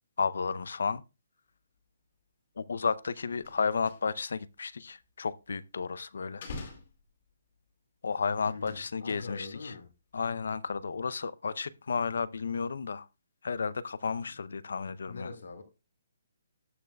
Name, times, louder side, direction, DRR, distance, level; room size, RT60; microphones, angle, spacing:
voice 1, 0.2-1.0 2.6-6.4 8.0-9.7 10.1-13.1 13.4-15.3, left 5 dB, 70° left, 0.5 m, -32 dB
sound 1, 2.6-2.8 3.0-4.4 4.7-5.8 6.3-7.7 8.4-9.7 9.9-10.4 10.7-10.9, left 3 dB, 35° left, 2.0 m, -47 dB
voice 2, 8.5-9.9 14.3-14.4 15.1-15.6, left 4 dB, 85° left, 2.1 m, -43 dB
18.5 x 6.3 x 2.2 m
hypercardioid pair, 175°, 0 cm